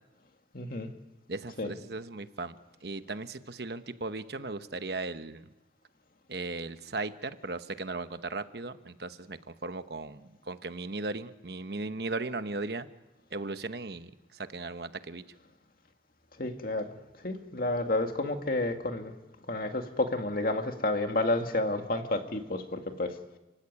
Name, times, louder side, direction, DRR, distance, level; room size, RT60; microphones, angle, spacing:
voice 1, 0.5-0.9 1.6-1.7 16.4-17.0 17.2-19.1 19.5-23.1, left 2 dB, 55° left, 5 dB, 2.1 m, -30 dB
voice 2, 1.3-5.5 6.3-12.9 13.3-15.2, right 3 dB, 65° right, 10 dB, 1.1 m, -37 dB
29.5 x 16.0 x 9.7 m, 1.0 s
head